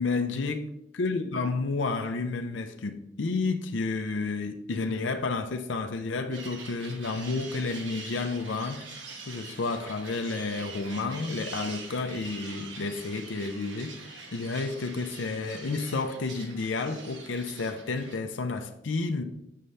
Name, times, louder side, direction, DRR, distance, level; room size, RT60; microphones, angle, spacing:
voice 1, 0.0-8.8 9.3-19.2, left 3 dB, 75° left, 0.5 m, -31 dB
sound 1, 6.3-18.1, right 4 dB, 75° right, 1.1 m, -44 dB
7.5 x 5.4 x 3.3 m
head